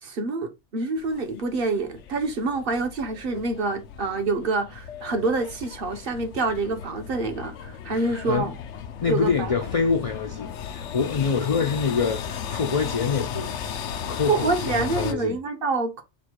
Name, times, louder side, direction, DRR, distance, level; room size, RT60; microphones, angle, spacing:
voice 1, 0.0-8.5 9.1-9.5 14.3-16.0, right 3 dB, 55° right, 0.9 m, -27 dB
sound 1, 1.0-15.1, left 8 dB, 80° left, 0.9 m, -36 dB
voice 2, 8.0-8.5 9.0-13.5 14.1-14.5 14.7-15.4, left 5 dB, 65° left, 0.3 m, -25 dB
4.0 x 2.2 x 4.4 m
omnidirectional pair, 1.2 m